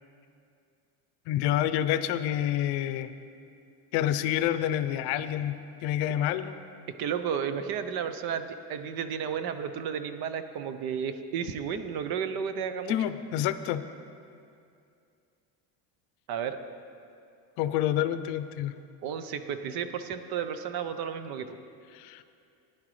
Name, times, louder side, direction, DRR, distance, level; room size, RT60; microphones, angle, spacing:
voice 1, 1.3-3.1 3.9-6.6 12.9-13.8 17.6-18.7 21.9-22.2, left 11 dB, 65° left, 12 dB, 0.6 m, -28 dB
voice 2, 7.0-13.0 16.3-16.6 19.0-21.6, right 7 dB, 55° right, 10 dB, 0.8 m, -32 dB
14.5 x 10.5 x 3.2 m, 2.4 s
cardioid pair, 130°, 43 cm